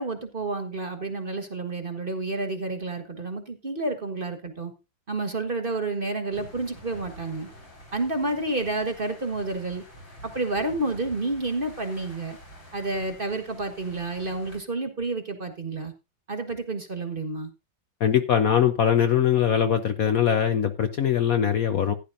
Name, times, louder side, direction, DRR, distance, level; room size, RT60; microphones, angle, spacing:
voice 1, 0.0-4.7 5.1-7.5 7.9-9.8 10.2-12.4 12.7-15.9 16.3-17.5, right 2 dB, 30° right, 1.4 m, -30 dB
sound 1, 6.3-14.6, equal, 80° left, 5.9 m, -48 dB
voice 2, 18.0-21.9, left 9 dB, 60° left, 1.0 m, -22 dB
15.5 x 10.5 x 2.6 m
omnidirectional pair, 2.1 m